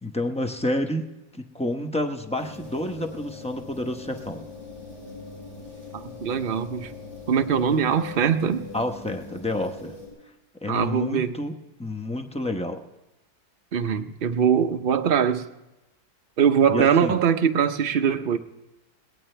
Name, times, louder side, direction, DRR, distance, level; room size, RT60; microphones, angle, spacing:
voice 1, 0.0-1.0 1.4-4.4 8.7-9.9 10.6-11.5 11.8-12.8 16.7-17.2, left 1 dB, 10° left, 5 dB, 0.4 m, -29 dB
sound 1, 2.4-10.1, left 3 dB, 35° left, 7.9 m, -41 dB
voice 2, 5.9-6.9 7.3-8.7 10.7-11.4 13.7-15.5 16.4-18.4, right 7 dB, 70° right, 7 dB, 0.5 m, -22 dB
22.0 x 18.0 x 3.3 m, 1.0 s
omnidirectional pair, 1.9 m